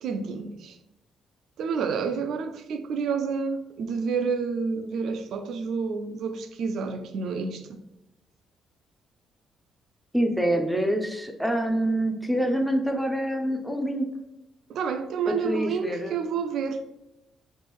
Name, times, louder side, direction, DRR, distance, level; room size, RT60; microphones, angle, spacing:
voice 1, 0.0-0.8 1.6-7.8 14.7-16.8, right 5 dB, 75° right, 0.4 m, -29 dB
voice 2, 10.1-14.1 15.3-16.2, right 1 dB, ahead, 0.5 m, -26 dB
3.0 x 2.5 x 3.4 m
cardioid pair, 90°, 0 cm